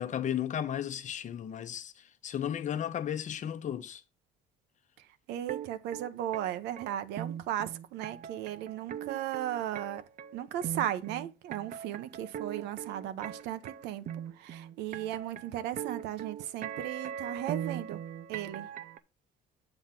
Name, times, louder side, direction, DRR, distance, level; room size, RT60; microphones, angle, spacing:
voice 1, 0.0-4.0, left 10 dB, 45° left, 0.8 m, -34 dB
voice 2, 5.0-10.0 10.3-14.1 14.3-18.0 18.3-18.7, right 12 dB, 90° right, 0.7 m, -36 dB
sound 1, 5.5-19.0, right 9 dB, 50° right, 0.7 m, -40 dB
7.9 x 3.5 x 5.8 m
cardioid pair, 110°, 17 cm